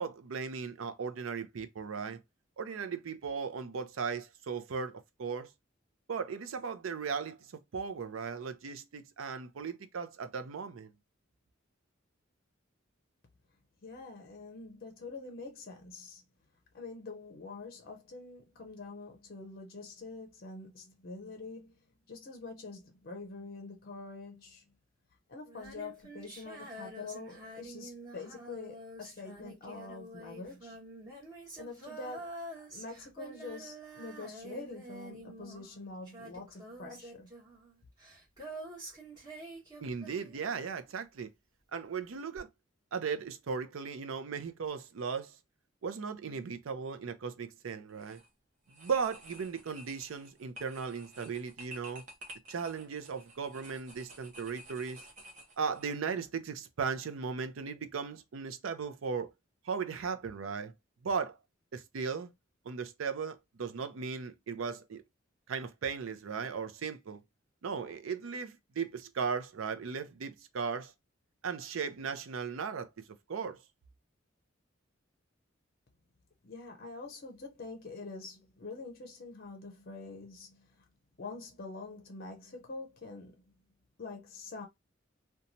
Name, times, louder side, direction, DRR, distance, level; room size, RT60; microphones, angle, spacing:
voice 1, 0.0-2.2 2.6-5.5 6.1-10.9 39.8-41.3 41.7-42.5 42.9-45.4 45.8-48.2 48.7-52.0 52.5-55.0 55.6-59.3 59.6-60.7 61.0-61.4 61.7-62.3 62.7-65.0 65.5-67.2 67.6-70.9 71.4-72.9 73.3-73.6, right 5 dB, 90° right, 0.5 m, -37 dB
voice 2, 13.8-16.2 16.7-21.8 22.1-24.6 25.3-30.8 31.6-37.3 76.4-80.8 81.2-83.4 84.0-84.7, left 3 dB, 50° left, 0.6 m, -45 dB
Female singing, 25.5-40.8 42.4-42.5, right 1 dB, 20° right, 1.3 m, -47 dB
sound 1, 47.9-48.3 48.7-55.9, equal, 40° right, 0.7 m, -52 dB
2.9 x 2.2 x 2.6 m
head